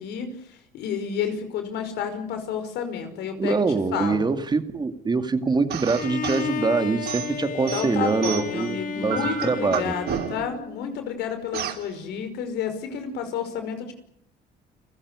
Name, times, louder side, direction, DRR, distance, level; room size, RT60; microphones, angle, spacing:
voice 1, 0.0-3.6 3.9-4.3 7.7-13.9, left 7 dB, 85° left, 8 dB, 5.5 m, -30 dB
voice 2, 3.4-9.2 9.4-9.9, right 4 dB, 25° right, 9 dB, 2.3 m, -24 dB
sound 1, 5.7-6.5 7.1-8.7 9.1-10.6 11.5-11.9, right 9 dB, 70° right, 3.0 m, -31 dB
Bowed string instrument, 5.9-10.9, left 6 dB, 50° left, 1.7 m, -33 dB
30.0 x 16.0 x 9.8 m, 0.72 s
cardioid pair, 110°, 17 cm